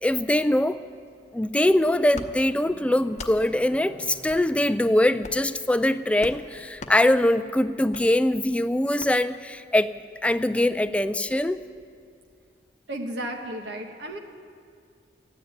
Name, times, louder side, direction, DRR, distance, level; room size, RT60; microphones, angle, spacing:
voice 1, 0.0-0.8 1.3-9.9 10.2-11.6, left 1 dB, 5° left, 11 dB, 0.4 m, -22 dB
sound 1, 1.0-6.5, equal, 20° right, 2.1 m, -52 dB
sound 2, 2.1-2.3 3.1-3.4 4.3-4.4 5.2-5.5 6.2-6.4 6.8-7.0 7.9-8.0 9.0-9.1, left 3 dB, 40° left, 0.8 m, -39 dB
voice 2, 12.9-14.2, right 1 dB, 70° right, 2 dB, 1.4 m, -33 dB
13.5 x 9.6 x 9.5 m, 2.2 s
head